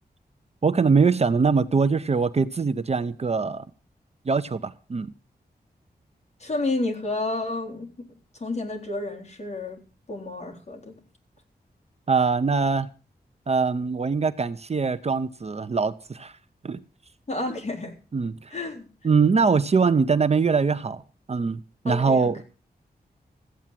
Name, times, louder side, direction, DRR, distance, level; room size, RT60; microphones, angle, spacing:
voice 1, 0.6-3.7 4.3-5.1 12.1-12.9 13.5-16.3 16.6-16.8 18.1-18.5 19.0-21.0 21.3-21.6 21.8-22.4, right 5 dB, 40° right, 0.7 m, -22 dB
voice 2, 6.4-7.9 8.4-9.8 10.1-10.9 17.3-18.0 18.5-18.9 21.9-22.4, left 2 dB, 40° left, 3.8 m, -30 dB
15.0 x 8.6 x 7.5 m
wide cardioid pair, 150°, 17 cm